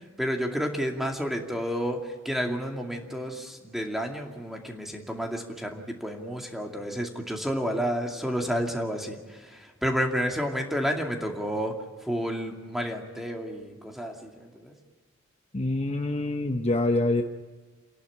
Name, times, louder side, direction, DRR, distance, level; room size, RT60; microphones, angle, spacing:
voice 1, 0.2-2.0 2.2-9.2 9.5-11.7 12.0-14.7, equal, ahead, 2 dB, 2.4 m, -30 dB
voice 2, 15.5-17.2, left 2 dB, 30° left, 5 dB, 1.0 m, -25 dB
28.5 x 11.5 x 9.8 m, 1.4 s
head